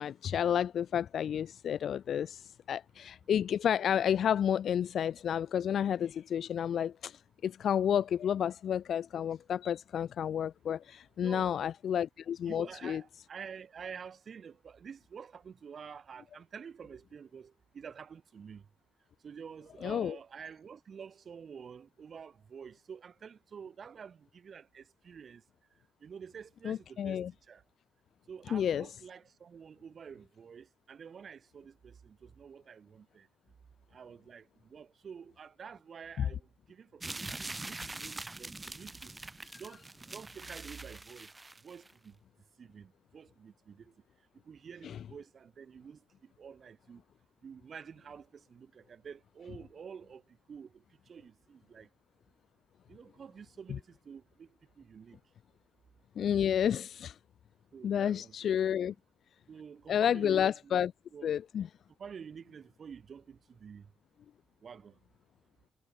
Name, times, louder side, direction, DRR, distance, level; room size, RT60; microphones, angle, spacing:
voice 1, 0.0-13.0 19.8-20.1 26.6-27.3 28.5-28.9 36.2-36.3 44.8-45.0 56.2-57.2 57.8-58.9 59.9-60.9 61.2-61.7, left 9 dB, 60° left, 1.3 m, -31 dB
voice 2, 11.2-11.6 12.5-18.7 19.2-25.4 26.0-27.6 28.3-33.3 33.9-39.1 39.5-41.3 41.6-42.2 42.6-43.9 44.4-47.0 47.4-51.9 52.9-54.5 54.8-55.2 57.7-58.5 59.5-60.8 61.1-61.3 62.0-63.9 64.6-65.0, right 6 dB, 50° right, 6.0 m, -49 dB
sound 1, 37.0-41.9, right 2 dB, 20° right, 1.6 m, -43 dB
cardioid pair, 95°, 0 cm